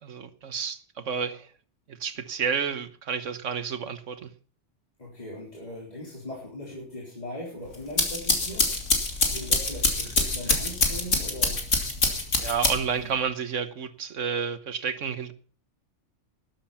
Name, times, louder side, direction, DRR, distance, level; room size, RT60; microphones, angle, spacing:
voice 1, 0.0-1.5 1.9-4.3 10.5-10.6 12.4-15.3, right 6 dB, 85° right, 1.5 m, -30 dB
voice 2, 5.0-8.9 9.3-11.6, left 1 dB, 35° left, 4.1 m, -39 dB
sound 1, 7.7-13.1, left 3 dB, 85° left, 2.9 m, -25 dB
13.5 x 11.0 x 5.7 m
omnidirectional pair, 1.2 m